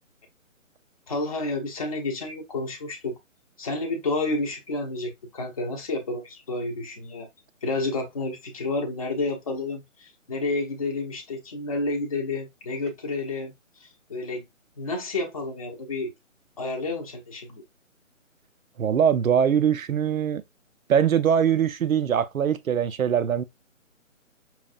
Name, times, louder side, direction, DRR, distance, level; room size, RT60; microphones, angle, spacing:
voice 1, 1.1-3.2 3.6-7.3 7.6-13.5 13.8-14.4 14.8-16.1 16.6-17.6, left 2 dB, 25° left, 0.7 m, -30 dB
voice 2, 18.8-20.4 20.9-23.4, right 8 dB, 85° right, 0.6 m, -22 dB
5.7 x 2.3 x 2.4 m
hypercardioid pair, 165°, 40 cm